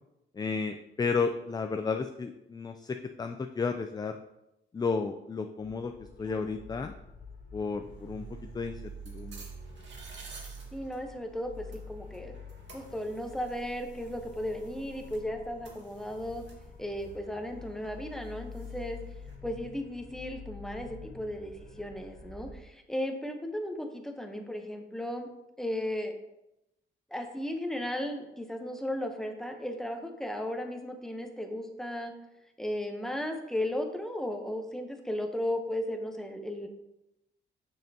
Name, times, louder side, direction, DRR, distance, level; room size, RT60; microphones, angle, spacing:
voice 1, 0.4-4.2 4.7-5.9 6.2-6.9 7.5-8.8 9.1-9.4, left 4 dB, 20° left, 6 dB, 0.3 m, -32 dB
sound 1, 5.6-22.5, left 2 dB, 45° left, 0.9 m, -47 dB
voice 2, 6.2-6.5 10.7-12.3 12.7-16.4 16.8-19.0 19.4-25.3 25.6-26.1 27.1-32.1 32.6-36.7, left 1 dB, ahead, 4 dB, 0.8 m, -35 dB
sound 2, 7.8-19.4, right 3 dB, 60° right, 1.7 m, -55 dB
6.5 x 6.4 x 2.8 m, 0.89 s
cardioid pair, 115°, 21 cm